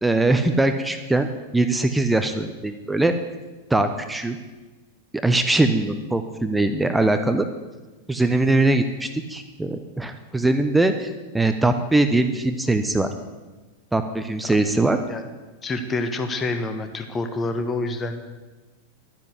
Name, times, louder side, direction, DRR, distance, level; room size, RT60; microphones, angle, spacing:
voice 1, 0.0-3.1 3.7-4.4 5.2-7.4 8.1-11.1 11.3-13.1 13.9-15.0, right 2 dB, 5° right, 8 dB, 0.9 m, -21 dB
voice 2, 15.6-18.3, left 2 dB, 20° left, 7 dB, 1.3 m, -27 dB
12.0 x 9.9 x 8.2 m, 1.2 s
figure-of-eight pair, 90°, 0 cm